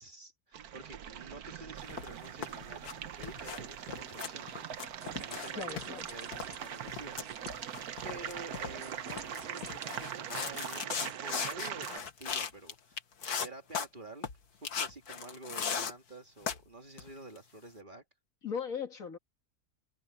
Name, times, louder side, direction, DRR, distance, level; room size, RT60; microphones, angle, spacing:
voice 1, 0.0-4.7 5.0-13.0 13.4-14.3 14.6-18.0, right 2 dB, 30° right, 2.3 m, -49 dB
sound 1, 0.5-12.0, right 9 dB, 75° right, 1.4 m, -42 dB
sound 2, 1.9-2.9 3.2-3.6 3.9-5.5 5.8-12.7 13.0-13.9 14.2-14.4 14.6-15.9 16.4-16.6 17.0-17.4, left 6 dB, 80° left, 2.0 m, -38 dB
sound 3, 5.0-11.3, equal, 5° right, 4.7 m, -57 dB
voice 2, 5.6-6.1 18.4-19.2, left 6 dB, 60° left, 2.2 m, -38 dB
omnidirectional pair, 1.6 m